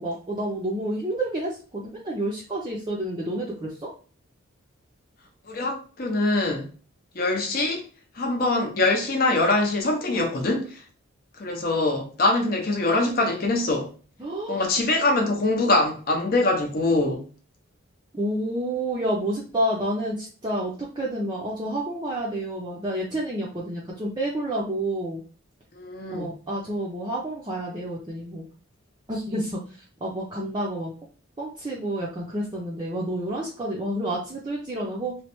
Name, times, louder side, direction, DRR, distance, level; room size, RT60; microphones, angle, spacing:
voice 1, 0.0-3.9 14.2-14.6 18.1-25.2 26.1-28.4 29.1-29.6 30.0-30.9 31.4-35.2, right 1 dB, 20° right, 0.5 m, -29 dB
voice 2, 5.5-6.7 7.1-7.8 8.1-10.8 11.4-13.9 14.5-17.2 25.7-26.4, left 2 dB, 45° left, 0.6 m, -23 dB
3.1 x 2.1 x 2.9 m
head